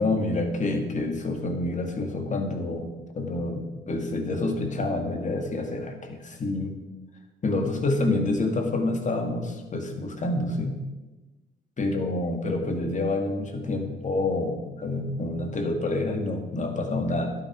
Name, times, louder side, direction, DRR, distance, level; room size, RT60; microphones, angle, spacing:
voice 1, 0.0-6.7 7.4-10.8 11.8-17.3, left 2 dB, 40° left, 4 dB, 2.1 m, -28 dB
11.5 x 10.5 x 4.8 m, 1.1 s
cardioid pair, 90°, 20 cm